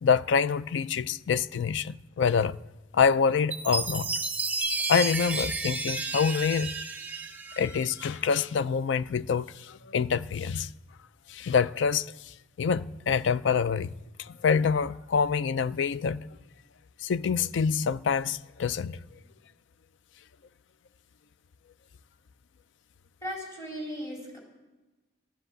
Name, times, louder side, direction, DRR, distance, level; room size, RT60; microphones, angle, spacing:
voice 1, 0.0-2.6 2.9-4.1 4.9-6.7 7.6-10.7 11.3-12.1 12.6-13.9 14.2-16.2 17.0-19.0, left 6 dB, 65° left, 0.4 m, -26 dB
Chime, 3.5-8.1, right 3 dB, 10° right, 0.8 m, -32 dB
voice 2, 23.2-24.4, equal, 15° left, 4.1 m, -37 dB
13.5 x 10.0 x 7.9 m
head